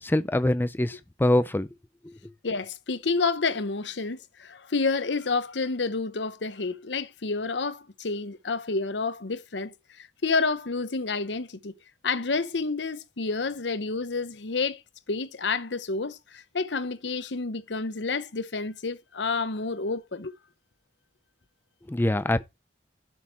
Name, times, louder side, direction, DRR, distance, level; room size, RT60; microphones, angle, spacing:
voice 1, 0.0-1.7 2.0-2.3 21.9-22.4, left 1 dB, 10° left, 0.4 m, -24 dB
voice 2, 2.4-11.7 12.0-14.8 15.1-20.3, left 4 dB, 80° left, 0.9 m, -29 dB
11.0 x 6.4 x 4.5 m
head